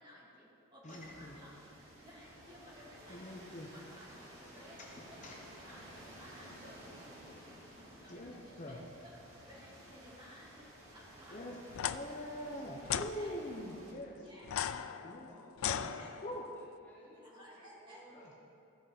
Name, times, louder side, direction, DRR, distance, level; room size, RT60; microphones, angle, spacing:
voice 1, 0.0-1.7 2.0-5.9 6.2-12.1 13.0-13.5 14.1-14.5 15.9-16.1 17.1-18.0, equal, 20° right, -7 dB, 2.4 m, -57 dB
voice 2, 0.8-1.4 3.1-3.7 5.2-5.4 8.1-8.8 11.3-11.5 11.9-14.2 15.0-15.3 15.7-15.9 16.2-16.4 18.1-18.3, equal, 35° left, -1 dB, 0.7 m, -43 dB
sound 1, 0.9-13.9, right 1 dB, 80° right, 2.6 m, -54 dB
sound 2, 11.7-12.0 12.8-13.1 14.4-16.5, left 9 dB, 80° left, 0.3 m, -37 dB
voice 3, 14.8-18.4, equal, 10° left, -6 dB, 1.5 m, -60 dB
15.0 x 5.2 x 4.9 m, 2.7 s
head